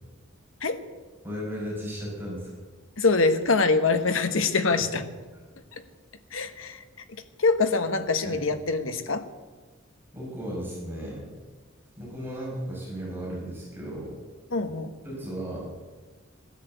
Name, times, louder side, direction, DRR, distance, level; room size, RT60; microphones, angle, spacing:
voice 1, 1.2-2.5 4.7-4.9 8.2-8.5 10.1-11.2 12.0-14.1 15.0-15.6, equal, 10° right, -6 dB, 6.4 m, -35 dB
voice 2, 3.0-5.0 6.3-6.8 7.4-9.2 14.5-14.9, left 3 dB, 85° left, 8 dB, 1.2 m, -24 dB
16.5 x 10.5 x 8.1 m, 1.4 s
head